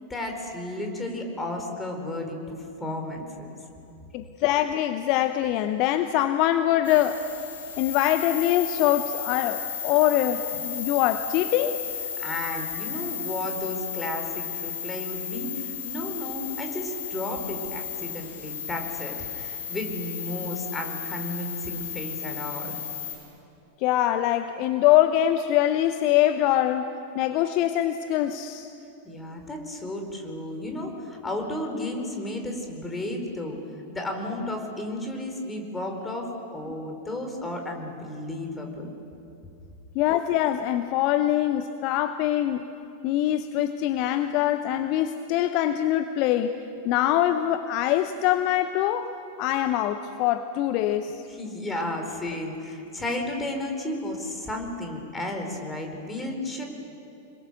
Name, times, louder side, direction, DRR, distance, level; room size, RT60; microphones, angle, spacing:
voice 1, 0.1-3.5 12.2-22.8 29.0-33.6 33.9-38.9 51.3-56.7, left 1 dB, 10° left, 3 dB, 4.4 m, -33 dB
voice 2, 4.1-7.2 7.8-11.8 23.8-26.9 27.1-28.7 39.9-42.6 43.0-46.5 46.8-49.1 49.4-51.2, left 12 dB, 40° left, 10 dB, 0.8 m, -23 dB
sound 1, 6.8-23.1, left 8 dB, 60° left, 6.5 m, -34 dB
28.0 x 22.0 x 6.8 m, 2.6 s
figure-of-eight pair, 90°, 0 cm